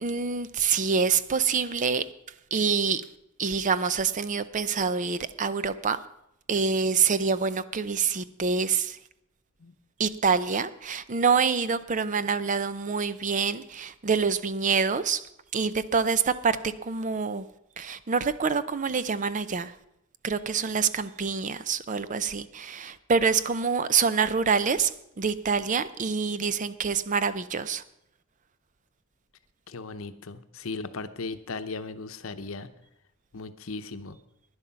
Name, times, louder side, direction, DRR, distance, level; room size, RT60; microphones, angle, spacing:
voice 1, 0.0-2.0 2.5-3.0 3.4-6.0 6.5-9.0 10.0-15.2 15.5-17.5 17.8-19.7 20.2-24.9 25.2-27.8, right 5 dB, 40° right, 14 dB, 0.5 m, -26 dB
voice 2, 29.7-32.7 33.3-34.2, left 3 dB, 80° left, 10 dB, 0.8 m, -37 dB
11.5 x 10.5 x 5.7 m, 0.80 s
head